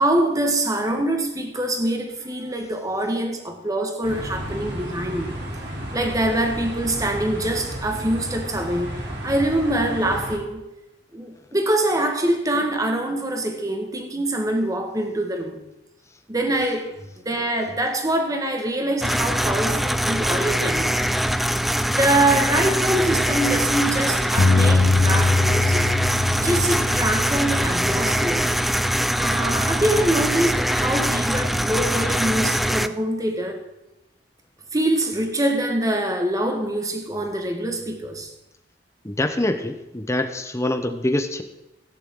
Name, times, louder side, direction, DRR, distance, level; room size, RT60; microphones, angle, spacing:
voice 1, 0.0-5.3 5.9-8.9 9.2-10.6 11.1-15.7 16.3-16.9 17.2-21.0 21.7-25.8 26.4-28.5 29.1-33.6 34.7-38.3, right 1 dB, 20° right, 1.7 m, -24 dB
sound 1, 4.0-10.4, equal, 60° right, 3.3 m, -32 dB
sound 2, 19.0-32.9, equal, ahead, 0.3 m, -23 dB
Bass guitar, 24.4-28.8 29.5-30.6, left 3 dB, 70° left, 0.5 m, -23 dB
voice 2, 39.0-41.4, left 1 dB, 15° left, 0.9 m, -25 dB
16.5 x 10.0 x 3.8 m
head